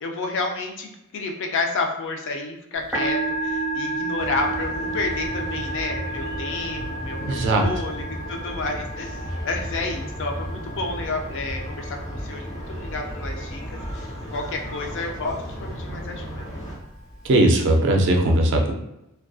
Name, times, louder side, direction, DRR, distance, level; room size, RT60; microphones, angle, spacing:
voice 1, 0.0-16.6, left 3 dB, 60° left, 3 dB, 0.4 m, -30 dB
Musical instrument, 2.7-17.5, right 2 dB, ahead, 0.9 m, -33 dB
sound 1, 4.2-16.8, equal, 35° left, 0.9 m, -34 dB
voice 2, 7.3-7.6 17.2-18.7, right 1 dB, 55° right, 3 dB, 0.4 m, -18 dB
2.5 x 2.2 x 2.3 m, 0.88 s
head